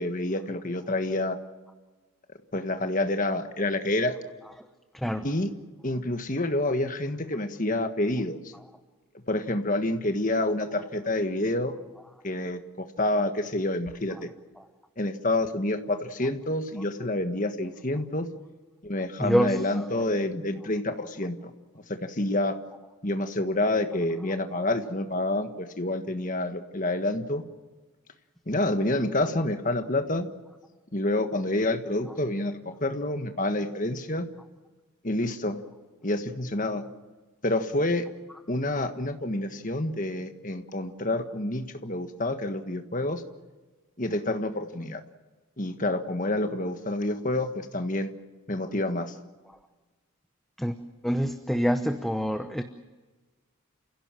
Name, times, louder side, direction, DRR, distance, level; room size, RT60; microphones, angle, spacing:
voice 1, 0.0-1.4 2.5-4.2 5.2-5.5 5.8-8.5 9.3-11.7 12.2-14.3 15.0-18.3 18.8-21.5 21.9-22.6 23.0-27.4 28.5-30.3 30.9-32.5 32.8-34.3 35.0-35.6 36.0-36.8 37.4-38.0 38.5-43.2 44.0-45.0 45.6-48.1 48.5-49.1, left 1 dB, 35° left, 7 dB, 1.5 m, -28 dB
voice 2, 4.9-5.3 14.6-14.7 19.2-20.0 50.6-50.8 51.0-52.6, equal, ahead, 7 dB, 0.8 m, -26 dB
30.0 x 16.5 x 7.7 m, 1.3 s
head